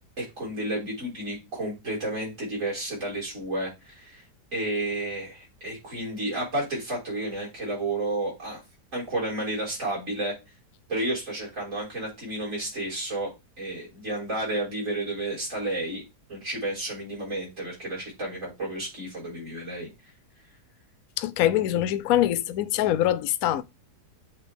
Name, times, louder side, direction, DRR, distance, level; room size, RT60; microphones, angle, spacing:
voice 1, 0.2-4.2 4.5-8.6 8.9-10.3 10.9-16.0 16.3-19.9, right 1 dB, 45° right, 5.1 m, -31 dB
voice 2, 21.2-23.6, left 12 dB, 70° left, 0.9 m, -24 dB
8.4 x 4.1 x 3.4 m
omnidirectional pair, 1.8 m